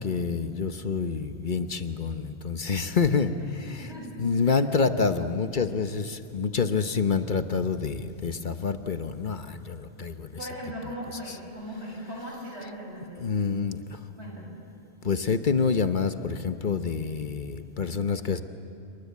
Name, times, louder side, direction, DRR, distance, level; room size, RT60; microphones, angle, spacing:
voice 1, 0.0-3.9 4.2-10.4 13.2-14.0 15.0-18.4, left 5 dB, 50° left, 9 dB, 1.1 m, -27 dB
voice 2, 3.7-4.2 10.4-13.4 14.2-14.6, equal, 85° right, -1 dB, 6.8 m, -39 dB
27.5 x 23.5 x 8.4 m, 2.5 s
omnidirectional pair, 1.1 m